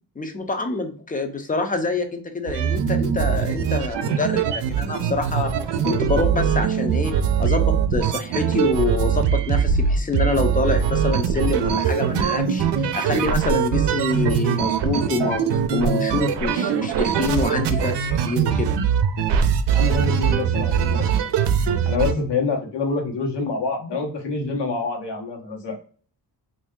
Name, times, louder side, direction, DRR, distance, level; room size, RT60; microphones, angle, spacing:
voice 1, 0.2-5.5 5.8-7.1 7.4-12.6 12.9-18.7, left 3 dB, 20° left, 6 dB, 0.5 m, -26 dB
sound 1, 2.5-22.1, right 7 dB, 90° right, 0.6 m, -22 dB
voice 2, 19.7-21.1 21.6-25.7, left 4 dB, 85° left, 1 dB, 1.1 m, -26 dB
3.2 x 2.6 x 3.5 m, 0.44 s
wide cardioid pair, 150°, 40 cm